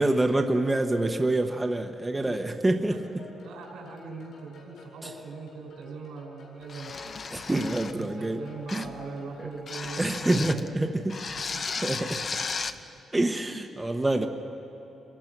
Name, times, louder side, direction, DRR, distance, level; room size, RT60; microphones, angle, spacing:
voice 1, 0.0-3.0 5.0-5.1 7.3-8.4 8.7-8.9 9.4-9.5 10.0-11.2 11.8-12.2 13.1-14.3, right 2 dB, 15° right, 4 dB, 1.0 m, -26 dB
sound 1, 3.2-10.5, left 3 dB, 75° left, 7.4 m, -51 dB
voice 2, 3.4-7.2 7.9-10.6 11.4-11.6, right 4 dB, 90° right, 0 dB, 5.2 m, -41 dB
sound 2, 6.7-8.1 8.7-9.0 9.7-10.7 11.1-12.8, left 4 dB, 40° left, 0.8 m, -35 dB
27.0 x 21.0 x 6.1 m, 2.8 s
cardioid pair, 130°, 0 cm